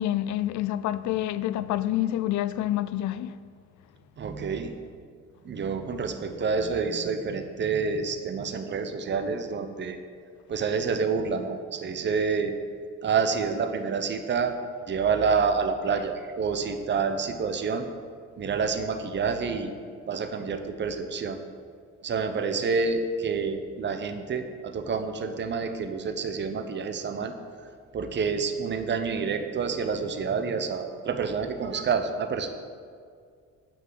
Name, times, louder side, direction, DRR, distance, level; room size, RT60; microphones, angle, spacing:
voice 1, 0.0-3.4, left 13 dB, 75° left, 0.5 m, -27 dB
voice 2, 4.2-4.7 5.4-10.0 10.5-12.5 13.0-14.6 14.9-17.8 18.4-19.7 20.1-21.4 22.0-27.3 27.9-32.5, right 5 dB, 40° right, 0.8 m, -28 dB
9.1 x 6.0 x 7.5 m
cardioid pair, 130°, 29 cm